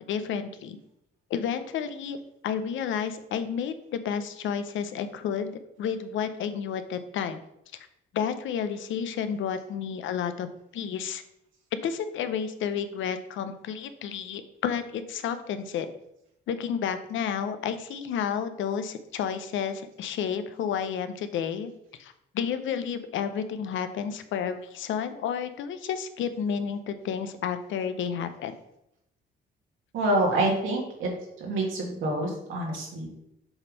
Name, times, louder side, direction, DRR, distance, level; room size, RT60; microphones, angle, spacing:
voice 1, 0.1-0.8 1.3-2.2 2.4-7.4 8.1-10.5 10.7-11.2 11.7-15.9 16.5-21.7 22.0-28.5, left 7 dB, 75° left, 10 dB, 0.7 m, -31 dB
voice 2, 29.9-31.1 31.4-33.2, right 1 dB, 85° right, 0 dB, 1.9 m, -27 dB
7.1 x 3.4 x 5.3 m, 0.81 s
cardioid pair, 90°, 20 cm